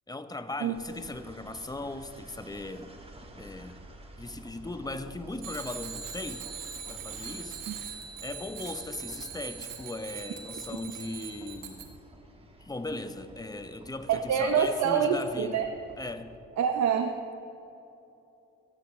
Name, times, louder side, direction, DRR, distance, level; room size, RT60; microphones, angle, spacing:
voice 1, 0.1-2.9 3.4-3.8 4.2-6.5 6.9-7.6 8.2-11.9 12.6-15.7 16.0-16.3, left 2 dB, 10° left, 0.8 m, -38 dB
sound 1, 0.7-16.4, right 1 dB, 20° right, 1.6 m, -51 dB
Bicycle bell, 5.4-11.9, right 7 dB, 85° right, 1.7 m, -41 dB
voice 2, 14.1-15.7 16.6-17.2, right 7 dB, 65° right, 0.8 m, -26 dB
16.5 x 14.5 x 3.2 m
cardioid pair, 90°, 30 cm